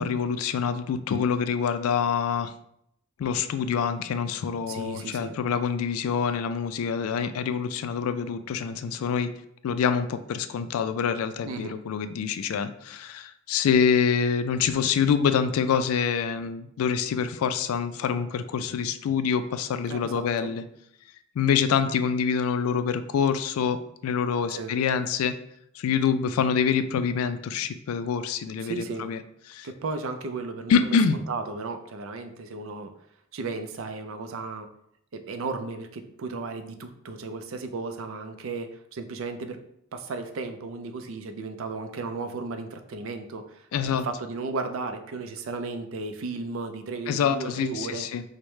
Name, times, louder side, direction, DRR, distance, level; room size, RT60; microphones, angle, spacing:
voice 1, 0.0-2.5 3.2-9.3 9.6-20.6 21.4-25.3 25.8-29.2 29.5-29.7 30.7-31.2 43.7-44.0 47.1-48.2, left 6 dB, 85° left, 11 dB, 0.3 m, -26 dB
voice 2, 4.7-5.4 11.4-11.8 19.9-20.5 24.5-24.7 28.6-29.1 29.6-32.9 33.3-34.7 35.1-39.6 39.9-48.1, right 3 dB, 70° right, 7 dB, 0.4 m, -35 dB
4.6 x 2.1 x 3.1 m, 0.74 s
head